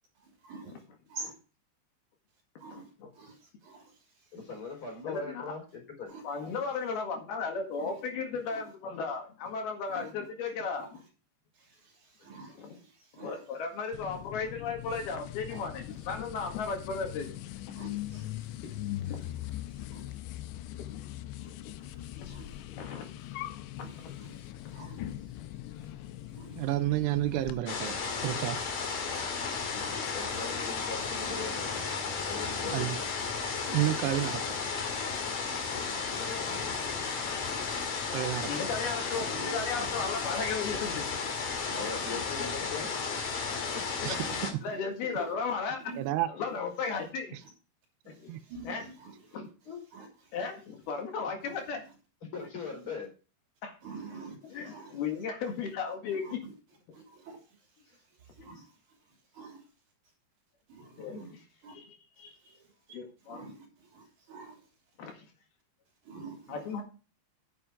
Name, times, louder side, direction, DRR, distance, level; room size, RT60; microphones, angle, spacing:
voice 1, 2.6-4.4 6.1-6.6 7.7-8.0 8.5-8.6 9.9-10.1 10.8-11.1 11.5-13.6 14.9-15.0 15.5-15.6 16.8-17.1 17.7-20.4 21.3-21.5 21.8-22.6 23.2-23.5 23.7-25.4 25.7-25.9 26.3-26.9 27.3-27.5 28.9-29.6 29.8-30.2 31.2-32.5 33.6-34.3 34.7-35.6 36.4-36.9 37.4-37.8 39.3-39.9 40.2-40.3 41.6-42.8 43.4-43.8 44.2-44.8 45.1-45.3 45.8-46.0 46.8-46.9 47.4-47.5 48.1-49.4 49.9-50.5 51.4-51.7 52.4-52.5 53.8-55.2 56.1-56.5 56.9-59.7 60.7-61.7 62.2-62.7 63.2-64.7 66.0-66.8, right 4 dB, 50° right, 4.0 m, -49 dB
voice 2, 4.3-6.1 12.2-12.3 29.7-31.8 32.2-33.1 33.6-33.8 36.1-36.8 40.7-40.9 41.7-42.9 43.6-44.0 45.0-45.2 49.3-49.8 52.3-53.1 57.9-58.0 58.4-58.5 61.1-61.2, left 4 dB, 30° left, 4.7 m, -41 dB
voice 3, 5.1-5.4 6.2-10.9 13.2-17.4 17.7-17.8 18.6-18.7 19.1-19.2 20.9-21.1 21.4-21.7 22.2-22.3 22.7-23.1 23.8-23.9 28.5-28.6 30.0-30.5 36.1-36.2 38.4-41.0 44.0-44.2 44.6-45.8 46.4-47.4 48.1-48.3 48.7-48.8 49.3-49.5 50.3-51.8 53.6-53.8 54.5-56.4 61.0-61.4 61.8-61.9 62.2-62.4 62.9-63.4 65.0-65.3 66.5-66.8, left 5 dB, 70° left, 3.7 m, -35 dB
sound 1, 13.9-27.6, left 13 dB, 85° left, 2.8 m, -41 dB
voice 4, 26.6-28.0 28.2-28.6 32.7-33.0 33.7-34.4 38.1-38.5 44.0-44.2 46.0-46.3 48.3-48.4, right 15 dB, 90° right, 2.9 m, -29 dB
sound 2, 27.7-44.5, left 5 dB, 50° left, 2.9 m, -34 dB
10.0 x 7.8 x 5.1 m
omnidirectional pair, 4.9 m